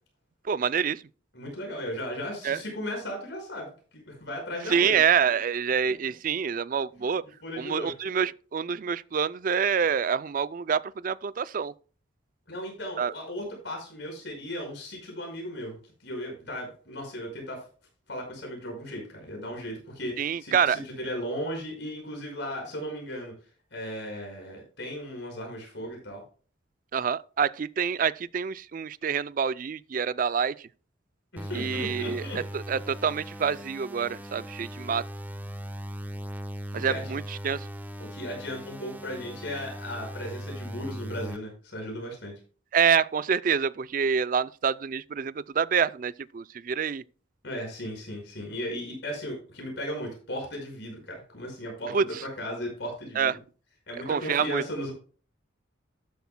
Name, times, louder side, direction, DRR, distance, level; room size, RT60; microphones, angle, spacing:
voice 1, 0.5-1.0 2.4-2.6 4.7-7.2 7.6-11.7 13.0-13.1 20.2-20.8 26.9-30.6 31.5-35.0 36.7-37.7 42.7-47.0 51.9-52.2 53.2-53.3 54.1-54.6, right 7 dB, 40° right, 0.3 m, -27 dB
voice 2, 1.3-5.0 6.0-6.1 7.4-7.9 12.5-17.6 18.1-23.3 23.7-26.2 31.3-32.4 36.8-37.1 38.0-42.3 47.4-53.4 53.9-54.9, equal, 60° left, 5.3 m, -36 dB
sound 1, 31.4-41.4, equal, 10° right, 0.7 m, -39 dB
12.5 x 10.0 x 2.2 m
head